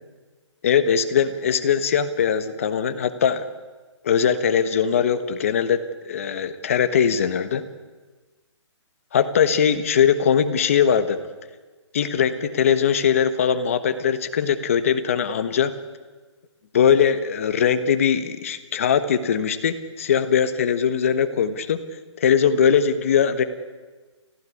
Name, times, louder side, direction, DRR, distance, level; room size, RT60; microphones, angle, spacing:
voice 1, 0.6-3.4 4.0-7.6 9.1-11.2 11.9-15.7 16.7-21.8 22.2-23.4, left 7 dB, 30° left, 10 dB, 1.3 m, -21 dB
30.0 x 16.0 x 9.8 m, 1.3 s
hypercardioid pair, 175°, 16 cm